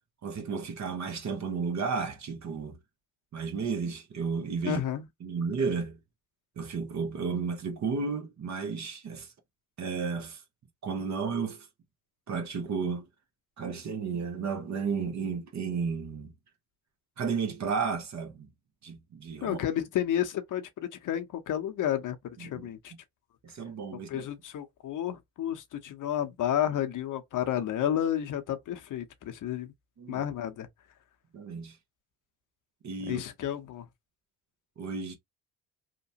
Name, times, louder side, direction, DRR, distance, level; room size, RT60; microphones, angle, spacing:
voice 1, 0.2-2.8 3.3-4.8 5.2-6.0 6.6-9.3 9.8-10.4 10.8-11.7 12.3-13.1 13.6-16.3 17.2-18.5 18.8-19.6 22.4-22.7 23.4-24.3 30.0-30.3 31.3-31.8 32.8-33.2 34.8-35.2, right 5 dB, 45° right, 0.9 m, -33 dB
voice 2, 4.6-5.1 19.4-22.9 23.9-29.7 30.1-30.7 33.1-33.9, left 10 dB, 55° left, 0.8 m, -31 dB
2.9 x 2.1 x 2.7 m
supercardioid pair, 65°, 37 cm